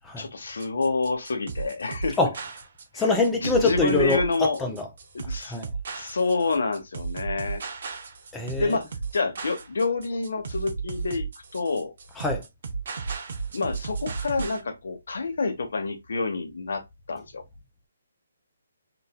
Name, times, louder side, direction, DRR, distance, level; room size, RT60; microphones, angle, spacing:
voice 1, 0.2-2.2 2.9-3.0 3.3-4.6 5.1-5.6 5.9-7.6 8.6-11.9 13.5-16.8 17.1-17.4, left 3 dB, 70° left, 1.0 m, -28 dB
sound 1, 0.6-14.6, right 5 dB, 50° right, 0.9 m, -34 dB
voice 2, 2.9-4.9 5.4-5.7 8.3-8.8 12.2-12.4, left 3 dB, 5° left, 0.5 m, -24 dB
4.0 x 2.6 x 2.3 m
hypercardioid pair, 170°, 0 cm